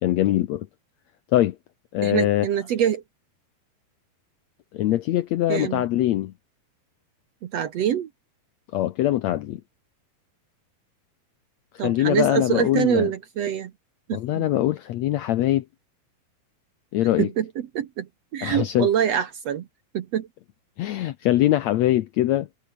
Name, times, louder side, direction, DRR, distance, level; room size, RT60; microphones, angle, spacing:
voice 1, 0.0-0.7 1.3-1.6 1.9-2.5 4.7-6.3 8.7-9.6 11.8-13.1 14.1-15.6 16.9-17.3 18.4-18.9 20.8-22.5, left 14 dB, 85° left, 1.5 m, -22 dB
voice 2, 2.0-3.0 5.5-5.8 7.4-8.1 11.8-13.7 14.1-14.5 17.2-19.7 19.9-20.3, right 9 dB, 65° right, 1.7 m, -25 dB
omnidirectional pair, 4.3 m